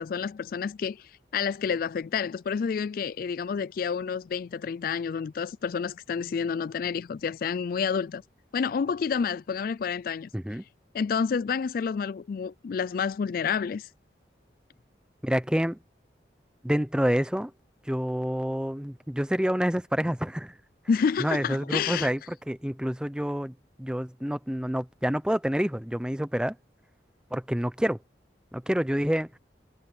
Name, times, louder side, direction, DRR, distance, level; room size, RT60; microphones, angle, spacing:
voice 1, 0.0-8.2 8.5-10.3 10.9-13.9 20.9-22.1, left 6 dB, 50° left, 0.3 m, -29 dB
voice 2, 10.3-10.6 15.2-15.8 16.6-17.5 17.9-20.5 21.2-26.5 27.3-28.0 28.5-29.3, equal, 5° right, 0.7 m, -28 dB
head